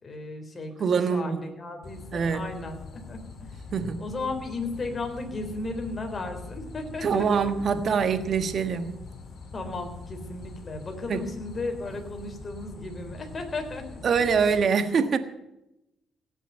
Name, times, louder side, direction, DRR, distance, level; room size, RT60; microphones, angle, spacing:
voice 1, 0.0-2.8 3.1-3.2 4.0-7.3 9.5-13.8, left 3 dB, 35° left, 3.7 m, -35 dB
voice 2, 0.8-1.4 2.1-2.5 3.7-4.0 7.0-8.9 11.1-11.2 14.0-15.2, right 6 dB, 55° right, 1.4 m, -24 dB
sound 1, 1.8-14.6, left 4 dB, 60° left, 2.5 m, -43 dB
17.5 x 7.2 x 9.2 m
cardioid pair, 90°, 0 cm